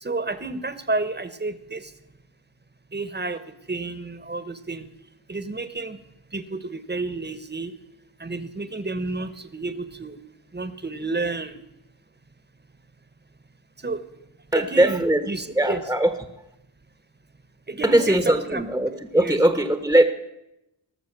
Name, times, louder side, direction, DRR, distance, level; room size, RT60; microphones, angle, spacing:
voice 1, 0.0-1.9 2.9-3.4 3.7-4.8 5.3-6.0 6.3-7.7 8.2-10.2 10.5-11.6 13.8-14.0 14.5-15.8 17.7-18.6 19.1-19.4, right 3 dB, 25° right, 11 dB, 1.1 m, -30 dB
voice 2, 14.5-15.3 15.5-16.1 17.8-20.0, right 1 dB, 5° right, 7 dB, 1.1 m, -20 dB
18.5 x 6.8 x 6.8 m, 0.87 s
cardioid pair, 55°, 44 cm